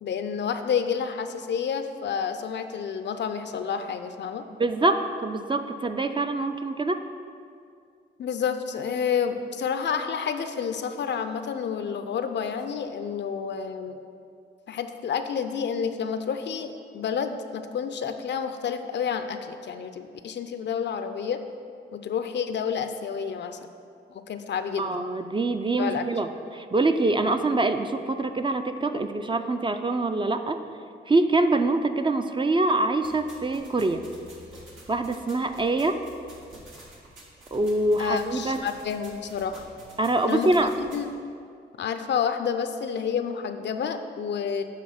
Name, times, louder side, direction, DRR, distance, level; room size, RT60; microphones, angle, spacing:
voice 1, 0.0-4.4 8.2-14.0 14.7-21.4 21.9-23.6 24.1-25.0 25.8-26.0 38.0-39.7 40.3-40.5 40.8-41.1 41.8-44.6, left 7 dB, 65° left, 9 dB, 0.5 m, -29 dB
voice 2, 4.6-7.0 24.8-30.6 31.1-34.0 34.9-36.0 37.5-38.6 40.0-40.7, right 2 dB, 25° right, 8 dB, 0.4 m, -25 dB
sound 1, 33.0-41.0, right 1 dB, 80° right, 1.5 m, -49 dB
7.4 x 3.5 x 5.9 m, 2.3 s
cardioid pair, 60°, 20 cm